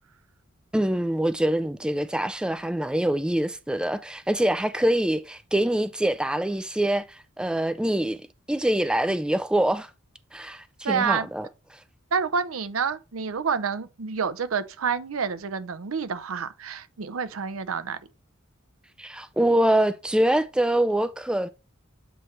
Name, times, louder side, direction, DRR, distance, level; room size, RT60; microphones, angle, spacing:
voice 1, 0.7-8.2 8.5-9.9 10.3-11.8 19.0-21.5, right 1 dB, 5° right, 0.3 m, -25 dB
voice 2, 10.8-11.3 12.1-18.0, right 6 dB, 80° right, 0.6 m, -28 dB
7.8 x 3.2 x 4.3 m
head